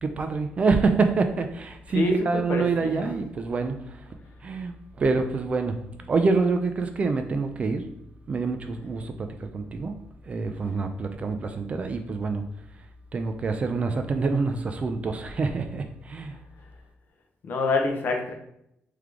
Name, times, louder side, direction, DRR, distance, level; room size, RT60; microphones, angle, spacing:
voice 1, 0.0-4.1 4.4-5.8 6.1-7.8 8.3-9.9 10.2-12.4 13.1-16.4, right 4 dB, 30° right, 7 dB, 0.3 m, -26 dB
voice 2, 1.9-3.1 17.4-18.3, left 3 dB, 50° left, 3 dB, 0.7 m, -26 dB
3.6 x 3.3 x 3.4 m, 0.77 s
wide cardioid pair, 165°, 4 cm